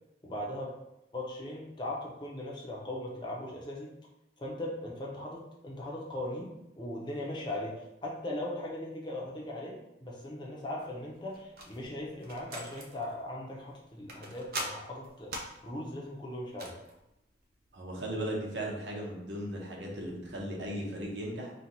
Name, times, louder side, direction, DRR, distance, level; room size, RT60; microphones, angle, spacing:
voice 1, 0.2-0.7 1.1-3.9 4.4-6.5 6.8-15.3 15.6-16.7, left 1 dB, 25° left, -3 dB, 0.8 m, -39 dB
sound 1, 10.7-17.7, right 1 dB, 55° right, 0.7 m, -44 dB
voice 2, 17.7-21.5, right 1 dB, 85° right, -1 dB, 1.0 m, -37 dB
4.4 x 2.4 x 4.0 m, 0.89 s
head